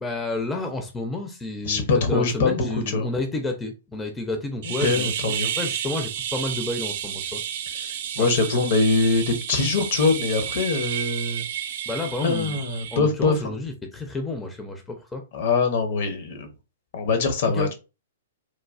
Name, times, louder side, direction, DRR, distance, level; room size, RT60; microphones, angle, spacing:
voice 1, 0.0-7.4 8.2-8.3 11.9-12.6 12.9-15.2 17.4-17.7, left 2 dB, 10° left, 0.5 m, -30 dB
voice 2, 1.7-3.1 4.8-5.5 7.8-11.5 12.2-13.5 15.3-16.5 16.9-17.7, left 4 dB, 50° left, 0.7 m, -23 dB
sound 1, 4.6-13.0, right 9 dB, 50° right, 0.3 m, -31 dB
3.1 x 2.3 x 2.3 m
figure-of-eight pair, 110°, 0 cm